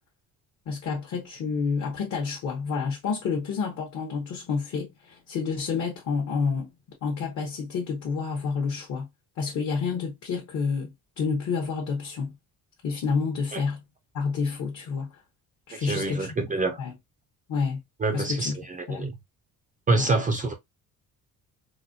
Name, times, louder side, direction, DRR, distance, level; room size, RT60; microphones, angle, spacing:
voice 1, 0.7-6.7 7.0-9.1 9.4-12.3 12.8-13.8 14.1-15.1 15.7-16.3 16.8-16.9 17.5-17.8 18.1-18.6 18.9-19.1 19.9-20.1, left 5 dB, 50° left, 0.9 m, -29 dB
voice 2, 15.7-16.8 18.0-19.1 19.9-20.5, right 3 dB, 25° right, 0.4 m, -26 dB
4.0 x 2.1 x 2.5 m
cardioid pair, 170°, 35 cm